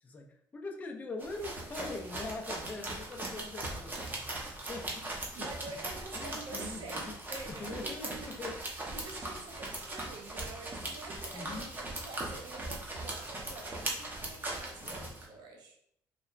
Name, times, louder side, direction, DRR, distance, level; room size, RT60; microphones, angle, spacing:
voice 1, 0.0-5.1 5.4-5.5 6.1-7.1 7.5-8.6 11.3-11.7 14.7-15.1, left 3 dB, 20° left, 1 dB, 0.4 m, -43 dB
sound 1, 1.2-15.3, right 2 dB, 25° right, 0.7 m, -39 dB
voice 2, 5.4-8.5 8.9-15.8, right 3 dB, 60° right, 1 dB, 0.5 m, -47 dB
2.9 x 2.1 x 2.4 m, 0.69 s
cardioid pair, 90°, 8 cm